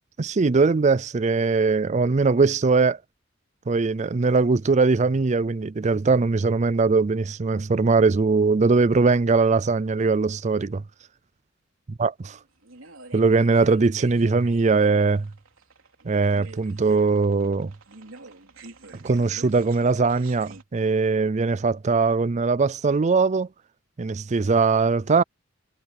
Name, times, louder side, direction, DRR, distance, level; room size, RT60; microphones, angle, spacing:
voice 1, 0.2-3.0 3.7-10.8 12.0-12.1 13.1-15.3 16.0-17.7 19.0-23.5 24.0-25.2, right 4 dB, 35° right, 0.4 m, -21 dB
sound 1, 12.2-20.6, right 3 dB, 90° right, 3.3 m, -47 dB
head